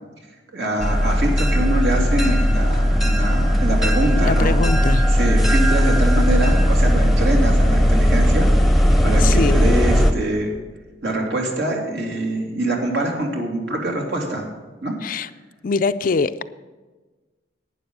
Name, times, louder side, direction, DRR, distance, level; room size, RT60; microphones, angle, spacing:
voice 1, 0.5-4.6 5.1-8.8 9.0-10.5 11.0-14.5 14.8-14.9, right 1 dB, 75° right, 0 dB, 2.7 m, -24 dB
sound 1, 0.8-10.1, equal, ahead, 0.8 m, -17 dB
voice 2, 4.1-5.1 9.2-9.7 15.0-15.3 15.6-16.4, left 4 dB, 50° left, 13 dB, 0.4 m, -23 dB
11.5 x 9.4 x 5.4 m, 1.3 s
head